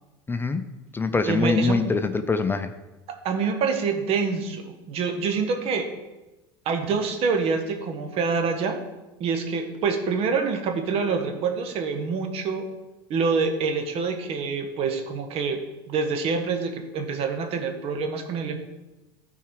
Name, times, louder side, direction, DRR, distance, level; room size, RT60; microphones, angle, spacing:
voice 1, 0.3-0.6 0.9-2.7, left 4 dB, 15° left, 9 dB, 0.6 m, -24 dB
voice 2, 1.3-1.9 3.2-5.9 6.6-8.8 9.2-12.6 13.1-15.6 15.9-18.6, right 5 dB, 50° right, 5 dB, 1.5 m, -26 dB
13.0 x 4.8 x 4.8 m, 1.1 s
hypercardioid pair, 90°, 13 cm